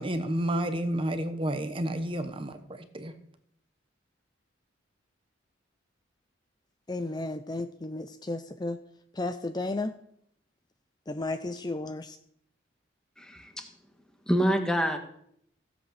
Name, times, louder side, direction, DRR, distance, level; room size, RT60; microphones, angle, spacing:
voice 1, 0.0-3.1, right 1 dB, 30° right, 1.1 m, -30 dB
voice 2, 6.9-8.8 9.1-10.0 11.1-12.2, left 2 dB, 20° left, 0.6 m, -33 dB
voice 3, 13.2-13.7 14.3-15.0, equal, 5° left, 1.5 m, -26 dB
16.0 x 8.2 x 6.8 m
head